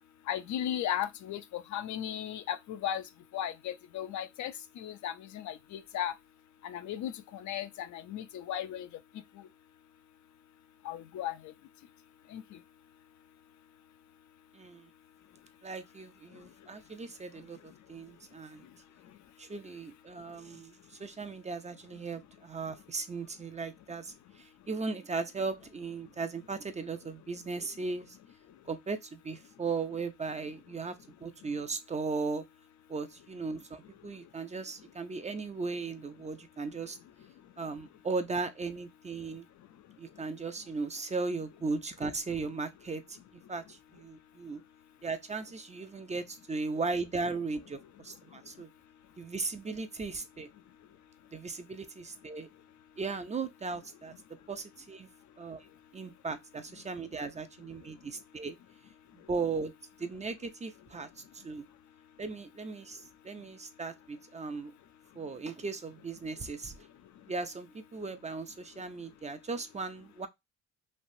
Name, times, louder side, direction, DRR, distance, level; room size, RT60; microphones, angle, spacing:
voice 1, 0.3-3.0 3.3-6.1 6.6-8.9 10.8-11.5 12.3-12.4, left 10 dB, 70° left, 0.5 m, -36 dB
voice 2, 14.5-14.9 15.6-18.7 19.4-28.2 28.7-32.4 32.9-37.0 37.6-39.5 40.0-44.6 45.0-48.7 49.2-50.5 51.3-52.5 53.0-54.1 54.5-55.1 55.4-55.7 55.9-58.6 59.3-59.7 60.0-61.6 62.2-64.7 65.1-66.9 67.3-70.3, right 4 dB, 25° right, 0.5 m, -37 dB
3.2 x 2.5 x 2.6 m
cardioid pair, 90°, 30 cm